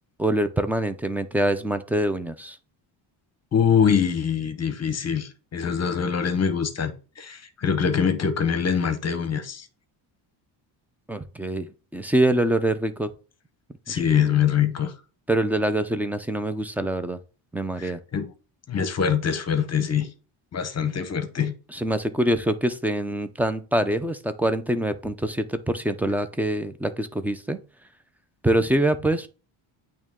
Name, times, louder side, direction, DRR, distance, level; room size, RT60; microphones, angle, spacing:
voice 1, 0.2-2.6 11.1-11.7 11.9-13.1 13.9-14.0 15.3-17.2 17.5-18.0 21.7-27.6 28.4-29.3, right 1 dB, 5° right, 0.4 m, -24 dB
voice 2, 3.5-9.7 13.9-14.9 17.8-18.3 18.7-20.1 20.5-21.5, left 7 dB, 35° left, 1.0 m, -24 dB
8.8 x 3.0 x 3.6 m
cardioid pair, 135°, 48 cm